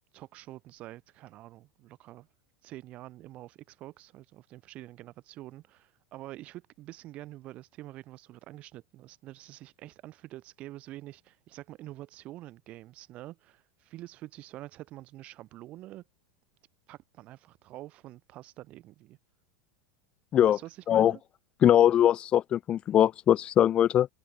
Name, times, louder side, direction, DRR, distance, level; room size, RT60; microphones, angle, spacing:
voice 1, 0.1-2.3 2.6-16.0 16.9-19.2 20.4-21.2, right 16 dB, 45° right, 5.1 m, -46 dB
voice 2, 21.6-24.1, left 11 dB, 35° left, 1.2 m, -21 dB
hypercardioid pair, 105°, 3 cm